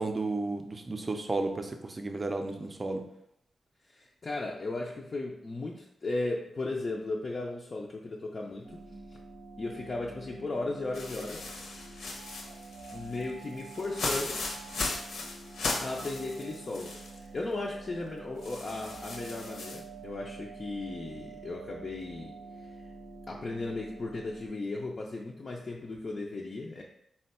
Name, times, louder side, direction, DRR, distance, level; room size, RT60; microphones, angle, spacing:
voice 1, 0.0-3.1, right 2 dB, 30° right, 5 dB, 0.5 m, -33 dB
voice 2, 3.9-8.8 9.1-9.2 9.6-11.5 12.9-14.4 15.8-22.9 23.3-26.8, left 2 dB, 40° left, -2 dB, 0.4 m, -36 dB
sound 1, 8.6-24.5, right 4 dB, 90° right, 0.9 m, -47 dB
sound 2, 10.9-17.2 17.5-17.6 18.4-19.8, left 3 dB, 80° left, 0.7 m, -37 dB
4.2 x 2.2 x 4.1 m, 0.75 s
wide cardioid pair, 110°, 0 cm